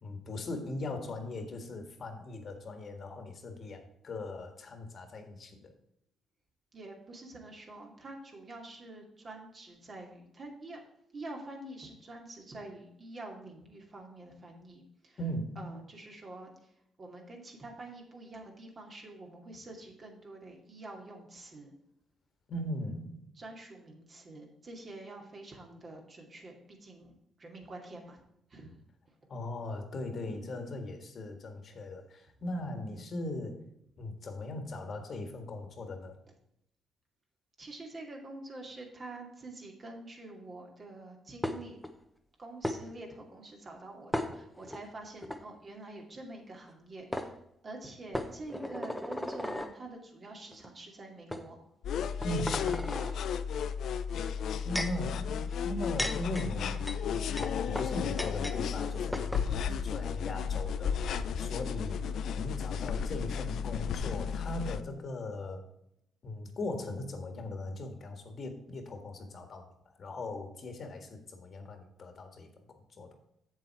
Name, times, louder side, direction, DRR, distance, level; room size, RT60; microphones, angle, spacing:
voice 1, 0.0-5.7 15.2-15.7 22.5-23.2 29.3-33.6 34.0-36.2 52.2-52.9 54.6-65.6 66.2-69.7 70.0-73.2, left 1 dB, 50° left, 6 dB, 1.7 m, -39 dB
voice 2, 6.7-10.8 11.1-15.2 15.6-16.5 17.0-21.7 23.4-28.2 28.5-28.7 37.6-41.8 42.4-47.4 47.6-51.6 60.4-60.6 61.9-62.1, right 2 dB, 40° right, 1 dB, 2.4 m, -47 dB
sound 1, 41.4-41.9 42.6-42.8 44.1-44.8 45.2-45.4 46.7-46.8 47.1-47.3 48.1-49.7 50.5-50.7 51.3-51.4 52.0-53.1 54.3-55.0 55.7-58.6 58.8-58.9 59.1-59.5, left 1 dB, 5° left, 1.0 m, -36 dB
sound 2, 51.8-64.8, left 7 dB, 70° left, 0.5 m, -33 dB
7.5 x 7.4 x 4.5 m, 0.79 s
cardioid pair, 90°, 0 cm